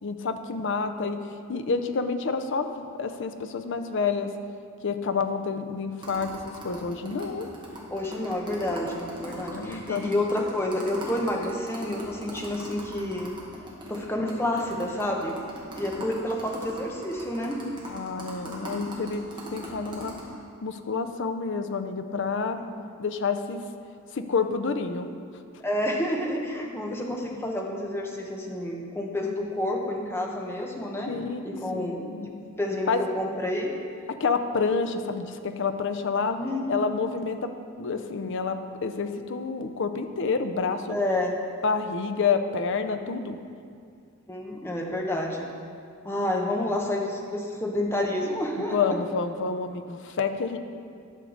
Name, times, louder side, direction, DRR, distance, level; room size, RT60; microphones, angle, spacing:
voice 1, 0.0-4.3 4.8-7.5 9.4-10.1 17.9-19.2 19.5-20.1 20.6-22.6 23.0-23.6 24.1-25.1 31.1-31.5 31.7-32.3 32.9-33.0 34.2-36.4 36.7-37.5 37.8-41.0 41.6-43.4 48.7-50.6, left 5 dB, 55° left, 8 dB, 0.5 m, -28 dB
sound 1, 6.0-14.0 14.3-14.4 14.6-20.2, right 1 dB, 20° right, 1.4 m, -40 dB
voice 2, 7.9-13.3 13.9-15.4 15.7-17.6 22.6-22.7 25.6-31.1 31.4-32.3 32.6-33.7 36.4-37.1 40.9-41.3 44.3-45.5 46.0-49.0, left 1 dB, 10° left, 0 dB, 0.8 m, -29 dB
11.0 x 6.5 x 3.9 m, 2.3 s
head